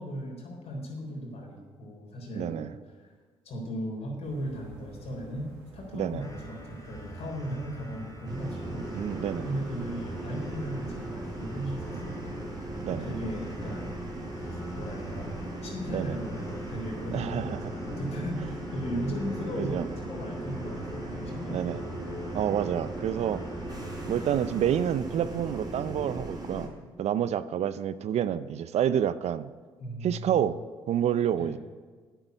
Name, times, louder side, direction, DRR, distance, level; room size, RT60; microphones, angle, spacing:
voice 1, 0.0-3.1 3.4-13.9 14.5-21.8 29.8-30.5 31.4-31.6, equal, 60° left, 0 dB, 3.9 m, -37 dB
voice 2, 2.3-2.7 5.9-6.2 8.9-9.5 12.8-13.1 15.9-16.2 17.1-17.7 19.6-19.8 21.5-21.8 22.3-23.4 24.1-26.7 27.0-29.5 30.0-30.6 30.9-31.6, right 10 dB, 60° right, 15 dB, 0.5 m, -28 dB
sound 1, 4.2-17.3, right 3 dB, 85° right, 1.6 m, -49 dB
sound 2, 6.2-24.9, right 1 dB, 25° left, 3.5 m, -44 dB
sound 3, 8.2-26.7, right 1 dB, 30° right, 4.2 m, -38 dB
9.1 x 7.6 x 8.0 m, 1.5 s
hypercardioid pair, 50°, 13 cm